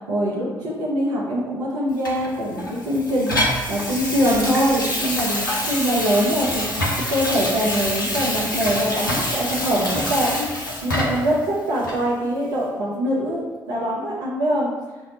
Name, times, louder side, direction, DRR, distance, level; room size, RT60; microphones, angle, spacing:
voice 1, 0.0-13.4 13.7-14.7, equal, 70° right, -7 dB, 0.6 m, -23 dB
Water tap faucet / Sink (filling or washing), 2.0-11.3 11.8-12.0, left 1 dB, 90° left, 0.4 m, -26 dB
sound 1, 4.2-4.8, right 1 dB, 30° right, 0.7 m, -29 dB
5.2 x 2.0 x 2.8 m, 1.2 s
figure-of-eight pair, 40°, 10 cm